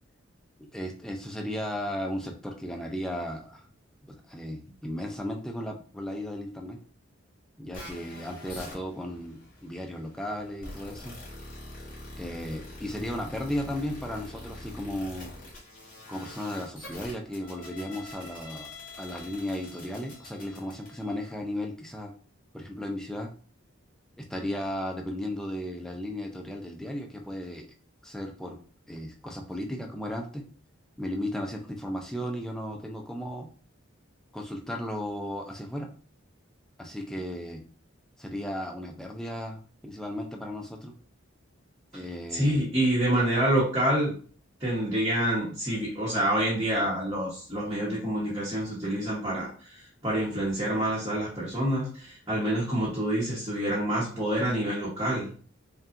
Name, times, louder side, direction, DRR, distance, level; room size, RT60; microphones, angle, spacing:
voice 1, 0.6-3.7 4.1-6.8 7.6-11.2 12.2-15.3 16.1-18.7 19.0-22.1 22.5-23.3 24.2-27.7 28.0-28.6 28.9-30.4 31.0-33.5 34.3-35.9 36.8-37.6 38.2-40.9 41.9-42.6, left 1 dB, 5° left, 1 dB, 0.4 m, -35 dB
sound 1, 7.7-21.3, left 1 dB, 40° left, 1.9 m, -45 dB
voice 2, 42.3-44.1 44.6-55.3, right 1 dB, 20° right, -8 dB, 1.1 m, -27 dB
5.3 x 2.3 x 2.5 m, 0.43 s
head